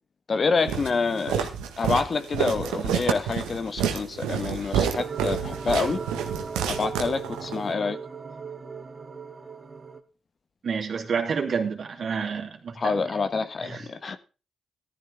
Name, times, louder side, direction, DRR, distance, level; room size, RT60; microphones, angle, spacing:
voice 1, 0.3-1.5 1.8-6.0 6.7-8.0 12.8-14.2, left 4 dB, 50° left, 1.3 m, -27 dB
Walk footsteps, 0.7-7.6, right 8 dB, 85° right, 1.5 m, -29 dB
sound 1, 5.0-10.0, right 5 dB, 40° right, 1.7 m, -37 dB
voice 2, 10.6-12.9 13.6-13.8, right 6 dB, 60° right, 3.2 m, -29 dB
14.5 x 13.0 x 3.6 m
supercardioid pair, 45°, 0 cm